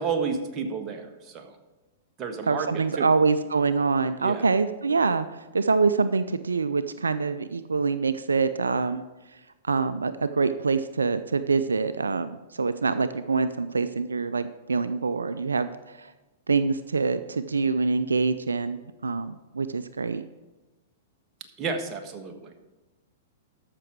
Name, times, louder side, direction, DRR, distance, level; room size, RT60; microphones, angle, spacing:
voice 1, 0.0-1.6 2.2-3.1 4.2-4.5 21.6-22.7, right 5 dB, 30° right, 5 dB, 1.4 m, -31 dB
voice 2, 2.5-5.3 5.5-9.1 9.7-15.7 16.0-16.1 16.5-20.2, right 4 dB, 90° right, 12 dB, 0.4 m, -25 dB
13.5 x 6.0 x 4.6 m, 1.1 s
hypercardioid pair, 110°, 0 cm